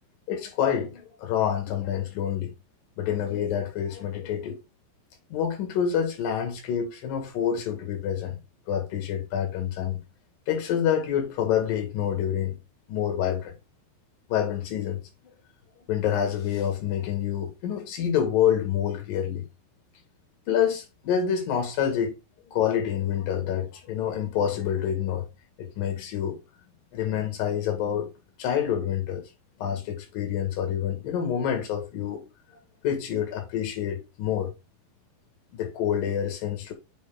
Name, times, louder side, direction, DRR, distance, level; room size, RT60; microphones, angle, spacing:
voice 1, 0.3-2.5 3.0-4.6 5.3-8.4 8.7-10.0 10.5-12.6 12.9-13.5 14.3-15.0 15.9-19.5 20.5-22.1 22.5-25.3 25.6-26.4 26.9-28.1 28.4-29.3 29.6-32.2 32.8-34.5 35.6-36.7, left 9 dB, 65° left, 3.3 m, -27 dB
7.7 x 4.4 x 3.7 m
omnidirectional pair, 4.5 m